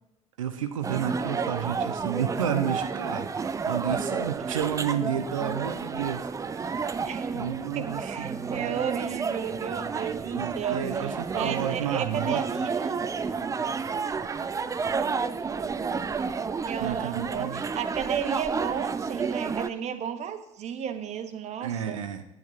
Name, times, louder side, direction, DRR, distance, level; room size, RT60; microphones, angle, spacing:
voice 1, 0.4-6.9 7.3-8.8 10.3-12.4 16.8-17.6 21.6-22.3, right 9 dB, 75° right, 9 dB, 0.7 m, -31 dB
sound 1, 0.8-19.7, right 5 dB, 20° right, 0.5 m, -31 dB
voice 2, 7.0-7.3 7.7-13.0 16.7-22.0, right 8 dB, 40° right, 9 dB, 1.1 m, -33 dB
10.5 x 8.8 x 3.6 m, 0.94 s
figure-of-eight pair, 65°, 17 cm